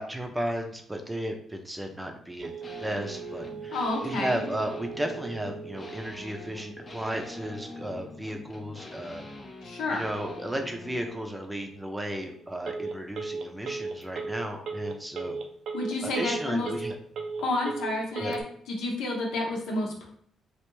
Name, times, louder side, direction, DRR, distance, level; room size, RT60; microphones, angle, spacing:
voice 1, 0.0-2.5 2.8-9.3 9.9-15.4 16.0-16.9 18.2-18.3, right 1 dB, 10° right, 3 dB, 0.5 m, -34 dB
Telephone, 2.4-18.4, right 4 dB, 65° right, 0.4 m, -39 dB
sound 1, 2.6-11.3, left 2 dB, 30° left, 0.6 m, -44 dB
voice 2, 3.7-4.4 9.6-10.0 15.7-16.7 17.4-18.4 18.7-20.1, left 2 dB, 85° left, -1 dB, 0.9 m, -30 dB
3.3 x 2.5 x 3.0 m, 0.65 s
cardioid pair, 90°, 0 cm